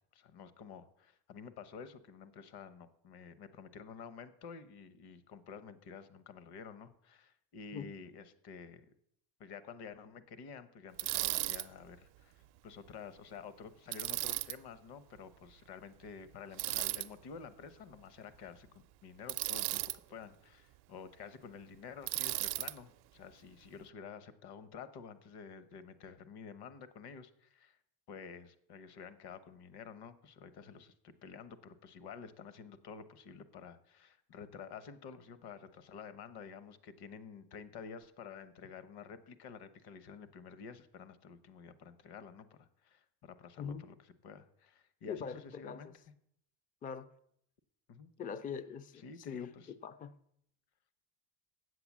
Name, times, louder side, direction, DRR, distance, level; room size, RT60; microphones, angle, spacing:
voice 1, 0.1-8.9 9.4-19.8 20.1-27.8 28.1-45.9 47.9-48.1 48.9-49.7, left 6 dB, 55° left, 14 dB, 1.1 m, -50 dB
Bicycle, 11.0-11.7 13.9-14.6 16.6-17.1 19.3-20.0 22.1-22.7, right 19 dB, 55° right, 0.5 m, -35 dB
voice 2, 43.6-43.9 45.1-45.8 46.8-47.1 48.2-50.1, left 6 dB, 20° left, 14 dB, 0.3 m, -42 dB
8.0 x 7.9 x 7.3 m, 0.73 s
cardioid pair, 125°, 47 cm